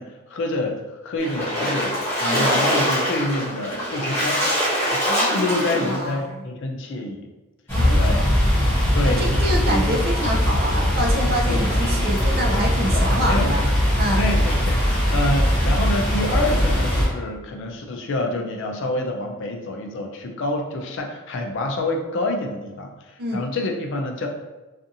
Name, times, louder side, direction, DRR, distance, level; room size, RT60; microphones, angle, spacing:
voice 1, 0.0-4.5 5.2-7.3 7.9-8.2 8.9-10.0 11.5-11.7 12.8-13.7 14.2-24.3, left 2 dB, 60° left, 2 dB, 0.4 m, -27 dB
Splash splatter, 1.2-6.1, equal, 30° left, 1.1 m, -23 dB
voice 2, 2.2-2.5 5.1-6.2 7.7-8.5 9.0-13.7 14.0-14.2 23.2-23.4, equal, 45° right, 0 dB, 0.5 m, -27 dB
sound 1, 7.7-17.1, equal, 10° left, 0.8 m, -20 dB
2.7 x 2.4 x 2.5 m, 1.1 s
head